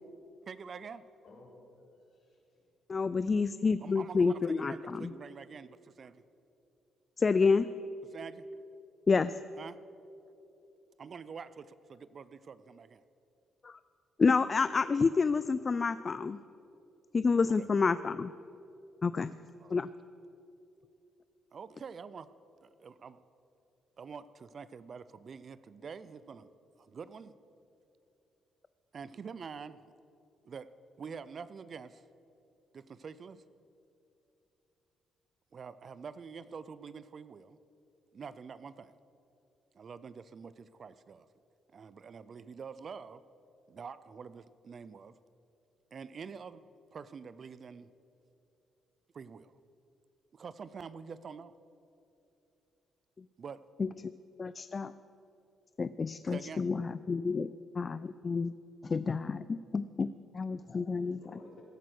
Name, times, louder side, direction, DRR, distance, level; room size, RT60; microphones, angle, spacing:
voice 1, 0.5-1.1 3.8-6.2 8.1-8.5 9.6-9.8 11.0-13.0 17.6-18.0 19.6-19.8 21.5-22.3 22.6-23.2 24.0-26.5 26.8-27.3 28.9-29.9 30.4-30.7 31.0-32.0 32.7-33.4 35.5-37.6 38.1-38.9 39.7-41.3 41.7-43.2 43.7-45.2 45.9-46.6 46.9-47.9 49.1-49.5 50.3-51.6 53.4-53.6 54.6-54.7 56.3-56.6, right 6 dB, 45° right, 16 dB, 0.5 m, -46 dB
voice 2, 1.2-2.7 61.0-61.6, left 2 dB, 60° left, -2 dB, 3.9 m, -56 dB
voice 3, 2.9-5.1 7.2-7.7 9.1-9.4 13.6-13.8 14.2-16.4 17.1-18.3 19.0-19.3 19.7-19.9 53.2-53.3 53.8-53.9 54.4-54.9 55.8-58.5 58.8-61.2, left 4 dB, 35° left, 14 dB, 0.3 m, -29 dB
16.5 x 9.3 x 6.1 m, 2.8 s
cardioid pair, 90°, 0 cm